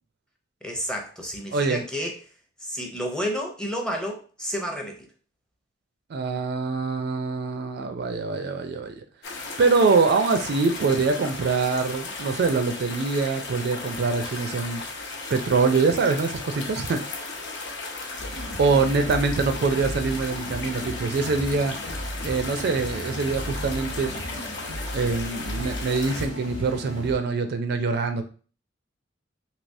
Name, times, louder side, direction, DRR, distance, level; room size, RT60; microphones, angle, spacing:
voice 1, 0.6-2.2 2.6-5.1, equal, 5° left, 2 dB, 0.5 m, -31 dB
voice 2, 1.5-1.8 6.1-9.0 9.6-14.8 15.3-17.0 18.6-21.7 22.2-24.1 24.9-28.2, right 4 dB, 55° right, 7 dB, 0.4 m, -24 dB
sound 1, 9.2-26.3, left 3 dB, 60° left, 0.7 m, -36 dB
sound 2, 18.2-27.2, equal, 85° left, 1.1 m, -35 dB
3.3 x 2.9 x 2.6 m, 0.38 s
head